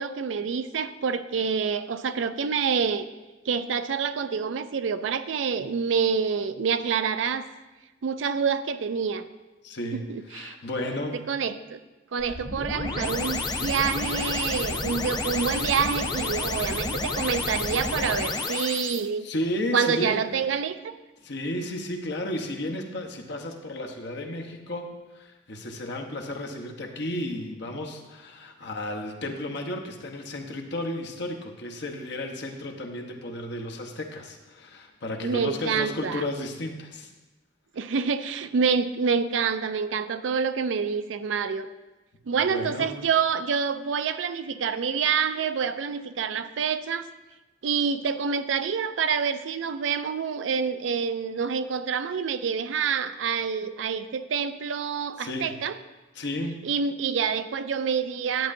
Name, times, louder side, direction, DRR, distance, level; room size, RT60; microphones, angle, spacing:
voice 1, 0.0-3.1 3.5-7.5 8.0-9.3 9.9-10.5 11.3-11.8 12.1-19.3 19.7-21.0 35.2-36.2 37.7-41.7 42.3-47.1 47.6-55.8 56.6-58.5, right 6 dB, 90° right, 12 dB, 0.4 m, -27 dB
voice 2, 9.6-10.0 10.3-11.2 12.2-12.3 19.2-20.2 21.2-37.1 42.5-42.9 55.2-55.5 56.1-56.6, left 1 dB, 65° left, 2 dB, 1.0 m, -33 dB
sound 1, 12.2-19.0, left 3 dB, 20° left, 0.5 m, -30 dB
10.5 x 8.4 x 2.6 m, 1.1 s
head